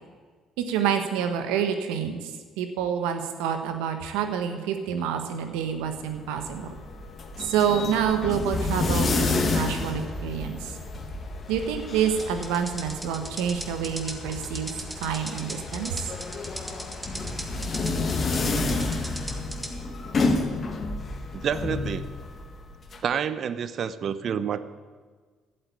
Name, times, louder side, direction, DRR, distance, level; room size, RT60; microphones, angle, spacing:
voice 1, 0.6-2.3 2.6-6.7 7.4-10.7 11.5-14.7 15.0-15.9, right 8 dB, 90° right, 7 dB, 1.4 m, -27 dB
sound 1, 5.9-23.0, left 3 dB, 45° left, 1.9 m, -30 dB
sound 2, 12.2-19.7, right 1 dB, 15° right, 2.2 m, -38 dB
voice 2, 21.3-22.1 23.0-24.6, right 7 dB, 55° right, 14 dB, 0.8 m, -28 dB
12.5 x 7.9 x 9.5 m, 1.5 s
supercardioid pair, 75°, 0 cm